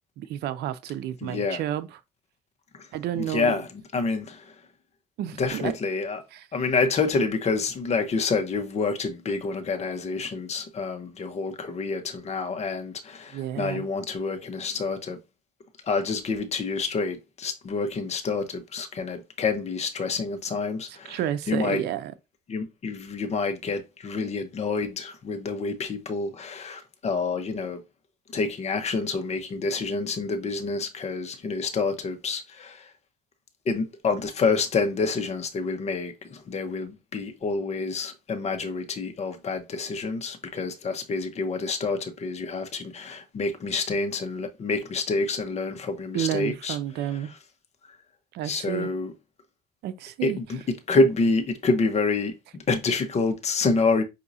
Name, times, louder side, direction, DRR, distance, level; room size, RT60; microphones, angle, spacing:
voice 1, 0.2-1.9 2.9-3.6 5.2-5.7 6.3-6.5 13.3-13.8 20.9-22.1 46.1-47.3 48.3-48.9 49.8-50.4, right 11 dB, 75° right, 0.6 m, -30 dB
voice 2, 1.2-1.6 2.8-2.9 3.1-4.5 5.4-6.2 6.5-15.2 15.8-21.2 21.5-21.8 22.5-27.8 28.3-32.9 33.6-46.8 48.4-49.1 50.2-54.0, left 4 dB, 40° left, 1.0 m, -28 dB
6.0 x 2.8 x 2.7 m
cardioid pair, 110°, 17 cm